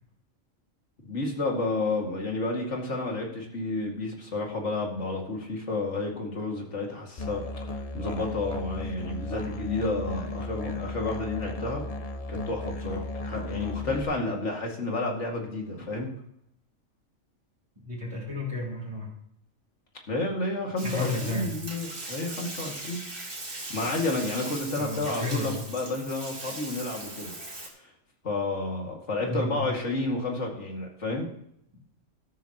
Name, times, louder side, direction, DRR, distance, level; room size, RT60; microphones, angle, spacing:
voice 1, 1.0-11.8 12.3-16.1 20.1-23.0 23.7-27.4 27.8-27.9 28.2-31.3, left 2 dB, 65° left, 0 dB, 2.5 m, -31 dB
Musical instrument, 7.2-14.0, left 2 dB, 35° left, 0.7 m, -35 dB
voice 2, 17.9-19.1 20.8-21.5 24.8-25.6 29.3-29.7, left 2 dB, 25° right, -6 dB, 4.1 m, -32 dB
Bathtub (filling or washing), 20.8-27.7, right 2 dB, 55° right, 2.9 m, -39 dB
13.0 x 13.0 x 3.0 m, 0.72 s
omnidirectional pair, 1.3 m